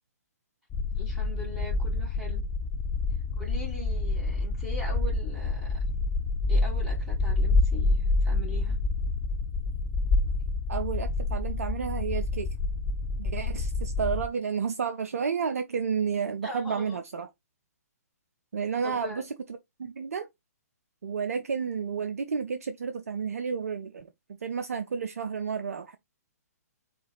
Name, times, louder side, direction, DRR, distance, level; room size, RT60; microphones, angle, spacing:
sound 1, 0.7-14.3, left 3 dB, 20° left, 0.4 m, -28 dB
voice 1, 1.0-2.4 3.4-5.8 6.5-8.8 16.4-17.0 18.8-19.2, left 1 dB, 5° right, 1.7 m, -41 dB
voice 2, 10.7-12.5 13.2-17.3 18.5-19.4 19.8-20.3 21.0-26.0, right 6 dB, 60° right, 0.5 m, -31 dB
4.5 x 2.5 x 4.3 m
figure-of-eight pair, 125°, 9 cm